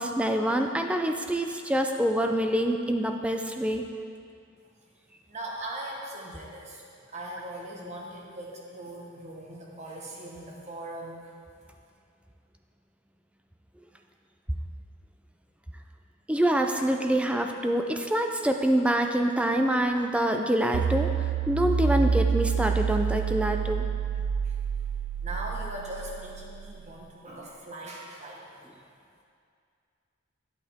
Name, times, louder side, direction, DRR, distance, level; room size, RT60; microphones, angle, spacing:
voice 1, 0.0-3.8 16.3-21.1 21.5-23.8, right 1 dB, 5° right, 4 dB, 0.4 m, -26 dB
voice 2, 5.3-6.8 7.1-11.2 24.4-24.6 25.2-28.8, right 1 dB, 35° right, -2 dB, 1.3 m, -40 dB
sound 1, 20.7-27.0, right 6 dB, 85° right, 0.3 m, -28 dB
11.0 x 7.9 x 3.6 m, 2.3 s
head